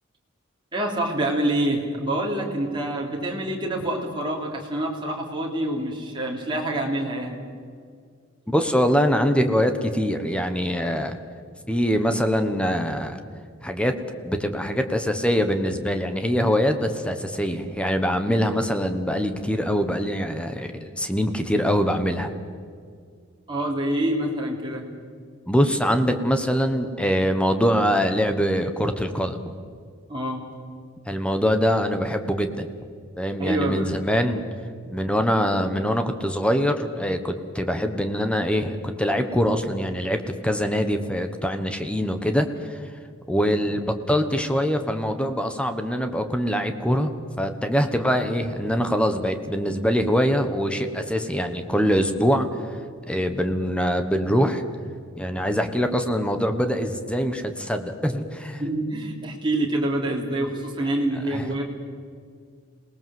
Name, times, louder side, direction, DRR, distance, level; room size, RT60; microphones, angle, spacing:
voice 1, 0.7-7.4 23.5-24.9 30.1-30.5 33.4-33.9 58.6-61.6, right 1 dB, 25° right, -1 dB, 3.3 m, -26 dB
voice 2, 8.5-11.2 11.7-13.2 13.6-13.9 14.2-20.7 21.0-22.3 25.5-29.5 31.1-32.7 33.2-34.4 34.9-42.8 43.3-47.1 47.4-52.5 53.1-54.6 55.1-58.6 61.3-61.5, equal, 5° left, 7 dB, 1.3 m, -23 dB
27.0 x 19.0 x 7.8 m, 2.1 s
head